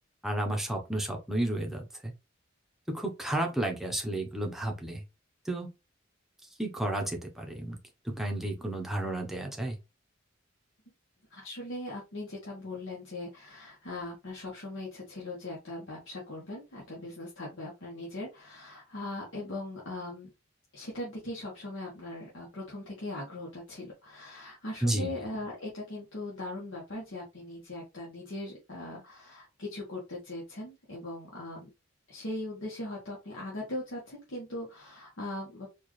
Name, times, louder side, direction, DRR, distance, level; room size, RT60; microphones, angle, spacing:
voice 1, 0.2-2.1 2.9-5.0 5.4-5.7 6.6-7.8 8.0-9.8 24.8-25.1, right 1 dB, ahead, 2 dB, 0.8 m, -32 dB
voice 2, 11.3-20.3 20.7-31.7 32.1-35.7, left 1 dB, 70° left, -4 dB, 1.2 m, -40 dB
4.3 x 2.4 x 3.1 m, 0.26 s
head